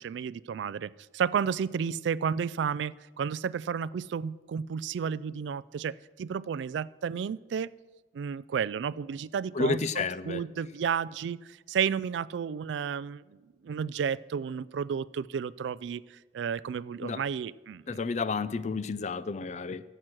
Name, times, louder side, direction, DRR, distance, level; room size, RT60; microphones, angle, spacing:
voice 1, 0.0-7.7 8.1-13.4 13.6-16.0 16.3-18.0, right 7 dB, 80° right, 20 dB, 0.3 m, -32 dB
voice 2, 9.5-10.4 17.0-17.2 17.9-19.8, left 4 dB, 40° left, 16 dB, 0.4 m, -31 dB
12.0 x 7.9 x 6.1 m, 1.2 s
head